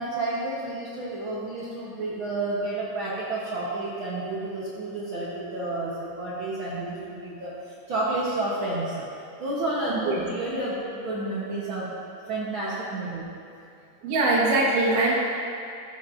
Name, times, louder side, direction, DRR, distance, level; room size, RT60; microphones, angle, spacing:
voice 1, 0.0-7.5 7.9-9.1 9.4-11.9 12.3-13.2, right 2 dB, 60° right, -7 dB, 1.4 m, -30 dB
voice 2, 14.0-15.1, right 2 dB, 85° right, -5 dB, 3.1 m, -22 dB
14.5 x 7.2 x 2.6 m, 2.5 s
omnidirectional pair, 3.5 m